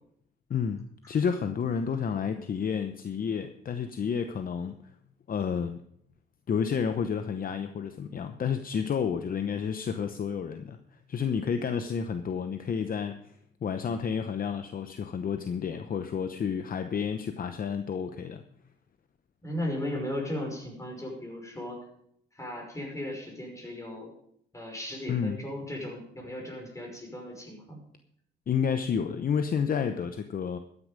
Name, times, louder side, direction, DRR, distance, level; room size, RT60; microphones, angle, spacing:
voice 1, 0.5-4.9 5.3-5.8 6.5-10.8 11.1-13.3 13.6-18.4 25.1-25.4 28.5-30.6, left 7 dB, 45° left, 8 dB, 0.9 m, -30 dB
voice 2, 19.4-21.8 22.3-24.1 24.5-27.8, left 1 dB, 15° left, 0 dB, 5.7 m, -36 dB
13.5 x 9.8 x 5.2 m, 0.69 s
cardioid pair, 90°, 20 cm